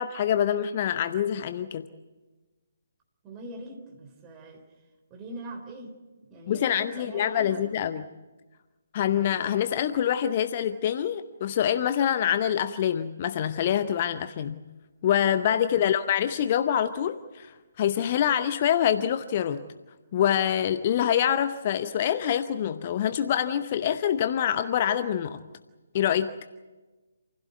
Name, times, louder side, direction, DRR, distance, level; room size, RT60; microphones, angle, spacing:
voice 1, 0.0-1.8 6.5-8.0 8.9-14.6 15.0-17.5 17.8-19.6 20.1-25.4 25.9-26.3, left 9 dB, 30° left, 11 dB, 0.8 m, -25 dB
voice 2, 3.2-4.6 5.1-5.9 6.3-7.9 9.0-9.3 15.7-15.9, right 1 dB, 15° right, 2 dB, 3.8 m, -42 dB
28.0 x 16.0 x 9.2 m, 1.2 s
figure-of-eight pair, 140°, 0 cm